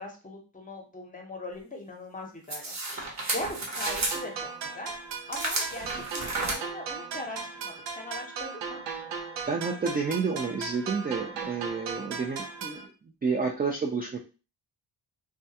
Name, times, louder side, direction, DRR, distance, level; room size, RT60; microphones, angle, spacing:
voice 1, 0.0-4.9 5.3-8.8, left 1 dB, 20° left, 1 dB, 0.8 m, -40 dB
sound 1, 2.5-4.2 5.3-6.5, right 2 dB, 40° right, 0.9 m, -32 dB
sound 2, 3.9-12.9, right 5 dB, 85° right, 0.6 m, -37 dB
voice 2, 9.5-12.8 13.2-14.2, right 5 dB, 25° right, 1 dB, 0.3 m, -30 dB
2.3 x 2.2 x 2.8 m, 0.32 s
cardioid pair, 85°, 44 cm